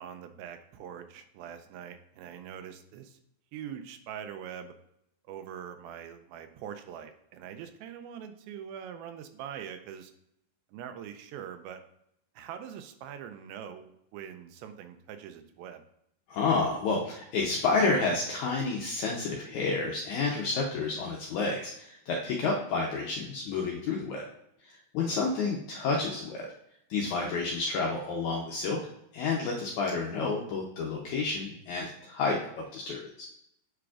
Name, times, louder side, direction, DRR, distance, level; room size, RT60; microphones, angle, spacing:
voice 1, 0.0-3.2 3.5-4.8 5.2-10.1 10.7-11.8 12.4-15.8 25.1-25.3, right 9 dB, 85° right, 8 dB, 2.4 m, -43 dB
voice 2, 16.3-24.2 24.6-26.5 26.9-28.8 29.1-33.3, left 4 dB, 80° left, -1 dB, 1.7 m, -30 dB
7.9 x 5.0 x 2.4 m, 0.77 s
omnidirectional pair, 4.2 m